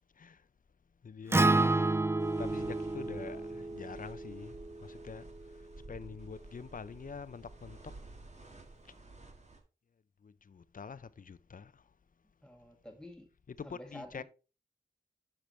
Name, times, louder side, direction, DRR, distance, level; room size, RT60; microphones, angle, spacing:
voice 1, 1.0-2.0 2.4-4.5 4.8-5.3 5.9-7.8 10.2-11.7 13.5-14.2, left 6 dB, 55° left, 0.5 m, -45 dB
Acoustic guitar, 1.3-5.6, right 2 dB, 15° right, 0.3 m, -30 dB
sound 1, 2.2-9.6, right 2 dB, 40° right, 1.6 m, -52 dB
voice 2, 12.4-13.3 13.6-14.2, left 1 dB, 5° left, 2.0 m, -49 dB
10.0 x 6.0 x 3.2 m
cardioid pair, 50°, 17 cm